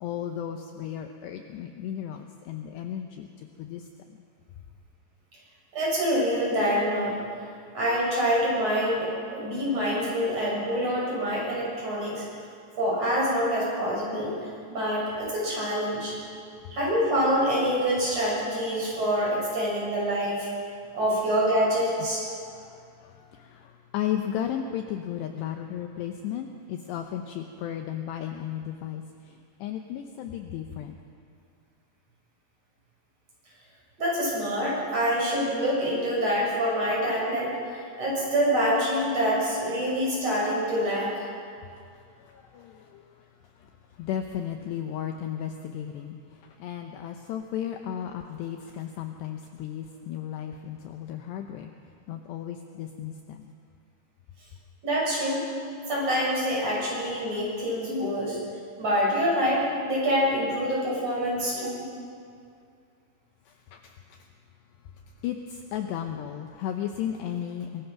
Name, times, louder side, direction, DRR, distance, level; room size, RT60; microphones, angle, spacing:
voice 1, 0.0-3.9 22.4-31.0 42.2-43.1 44.0-46.2 46.6-51.7 52.1-53.4 63.7-64.2 65.2-67.8, left 10 dB, 75° left, 5 dB, 2.7 m, -34 dB
voice 2, 5.7-7.2 7.7-12.2 12.8-14.4 14.7-16.1 16.7-20.5 20.9-22.3 34.0-37.5 38.0-41.2 54.8-55.4 55.9-58.4 58.8-61.8, equal, 30° right, -5 dB, 7.7 m, -26 dB
24.5 x 21.0 x 5.9 m, 2.3 s
omnidirectional pair, 5.6 m